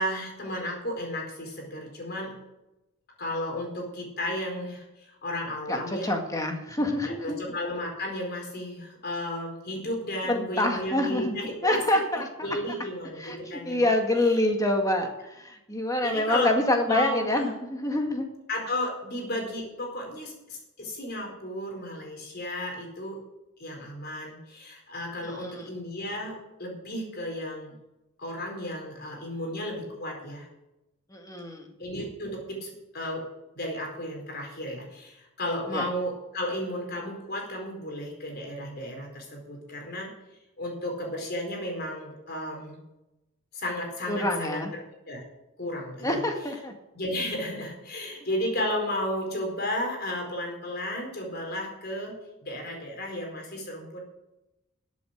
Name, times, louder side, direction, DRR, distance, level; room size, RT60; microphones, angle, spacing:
voice 1, 0.0-2.3 3.2-6.1 7.0-13.9 16.0-16.5 16.8-17.5 18.5-23.2 23.6-27.8 28.2-30.5 31.8-33.3 33.5-40.1 40.6-42.8 43.5-44.6 45.1-45.2 45.6-46.2 46.9-52.1 52.4-54.0, left 1 dB, 50° left, 1 dB, 4.5 m, -33 dB
voice 2, 5.7-7.4 10.3-12.3 13.2-18.3 25.2-25.7 31.1-31.6 35.7-35.9 44.1-44.7 46.0-46.7, left 1 dB, 15° left, 3 dB, 1.9 m, -26 dB
14.0 x 8.2 x 6.6 m, 0.94 s
head